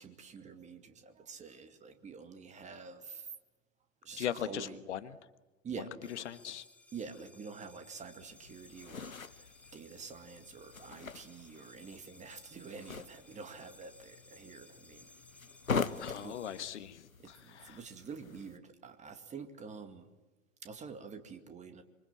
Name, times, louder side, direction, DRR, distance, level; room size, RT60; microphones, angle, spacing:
voice 1, 0.0-3.4 4.0-4.8 5.6-6.1 6.9-15.1 16.1-16.7 17.2-20.1 20.6-21.8, right 5 dB, 15° right, 8 dB, 2.2 m, -47 dB
voice 2, 4.2-5.1 6.1-6.7 16.0-17.8, left 10 dB, 55° left, 12 dB, 1.4 m, -39 dB
sound 1, 6.0-16.6, left 3 dB, 5° left, 1.4 m, -60 dB
sound 2, 8.2-18.6, left 5 dB, 80° left, 1.1 m, -43 dB
26.0 x 25.0 x 8.9 m, 1.1 s
figure-of-eight pair, 100°, 40 cm